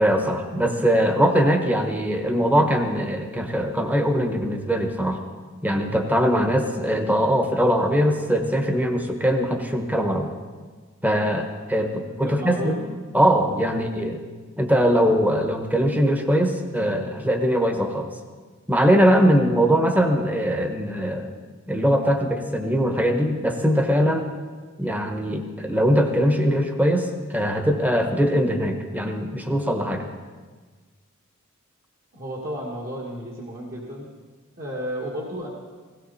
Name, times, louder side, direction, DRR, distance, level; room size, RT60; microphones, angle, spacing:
voice 1, 0.0-5.2 5.6-10.3 11.0-12.8 13.1-14.2 14.6-18.1 18.7-21.3 21.7-24.2 24.8-30.0, equal, 10° right, 5 dB, 1.2 m, -21 dB
voice 2, 11.7-12.9 13.7-13.9 32.1-34.1 34.6-35.5, equal, 45° right, -4 dB, 2.1 m, -33 dB
17.5 x 17.0 x 4.2 m, 1.4 s
head